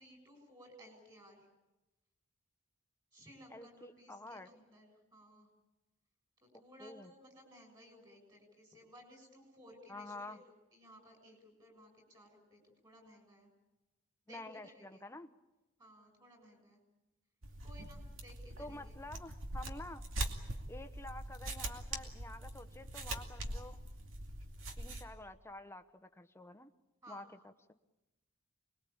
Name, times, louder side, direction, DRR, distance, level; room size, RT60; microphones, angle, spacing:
voice 1, 0.0-1.5 3.1-5.5 6.4-13.5 14.3-15.1 15.8-16.8 17.6-19.0 27.0-27.4, equal, 20° right, 4 dB, 7.0 m, -58 dB
voice 2, 3.5-4.5 6.8-7.1 9.9-10.4 14.3-15.3 18.6-20.0 20.7-23.8 24.8-26.7 27.1-27.7, left 2 dB, 10° left, 9 dB, 1.0 m, -49 dB
sound 1, 17.4-25.0, right 1 dB, 70° right, 2.5 m, -43 dB
26.0 x 21.5 x 8.7 m, 1.0 s
head